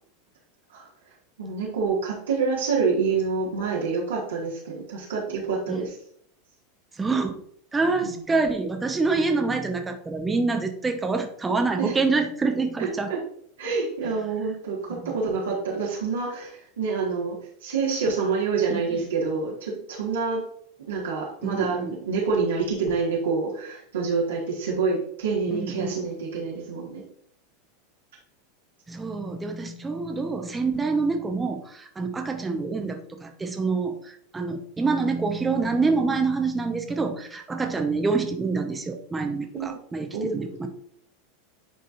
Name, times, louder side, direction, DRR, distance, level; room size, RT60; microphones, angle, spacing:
voice 1, 0.7-6.0 8.0-8.3 11.8-12.0 12.8-13.2 13.6-20.4 20.8-27.0 32.5-32.6 39.5-39.8 40.1-40.4, right 4 dB, 80° right, -4 dB, 1.8 m, -27 dB
voice 2, 7.0-7.4 7.7-13.1 14.9-15.1 18.7-18.8 21.4-21.9 25.5-25.9 28.9-40.7, right 4 dB, 15° right, 4 dB, 0.9 m, -26 dB
10.0 x 4.0 x 2.6 m, 0.66 s
hypercardioid pair, 90°, 0 cm